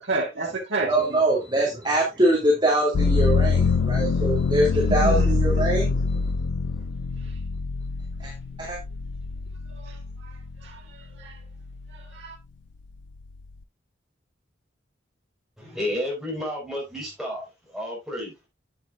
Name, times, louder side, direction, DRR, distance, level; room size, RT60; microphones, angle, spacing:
voice 1, 0.0-1.2 5.0-5.5 9.8-10.0 10.2-10.3 10.6-11.4 11.9-12.4, right 2 dB, 70° right, 1.9 m, -30 dB
voice 2, 0.9-6.2 8.2-8.3 8.6-8.8, right 1 dB, 25° right, 2.2 m, -23 dB
sound 1, 2.9-10.8 11.2-12.0, left 4 dB, 75° left, 0.4 m, -25 dB
voice 3, 15.6-17.4 17.7-18.3, left 1 dB, ahead, 5.0 m, -31 dB
9.1 x 8.6 x 2.5 m
head